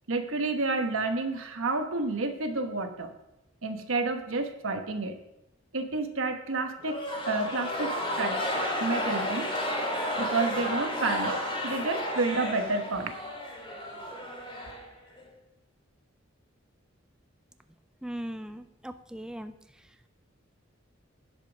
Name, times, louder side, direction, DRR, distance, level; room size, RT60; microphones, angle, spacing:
voice 1, 0.1-3.1 3.6-5.2 5.7-9.5 10.2-13.1, right 3 dB, 85° right, 6 dB, 1.1 m, -30 dB
sound 1, 6.8-15.3, left 1 dB, 25° left, 2.5 m, -32 dB
voice 2, 18.0-19.5, equal, 5° right, 9 dB, 0.4 m, -38 dB
10.5 x 5.3 x 6.1 m, 0.89 s
head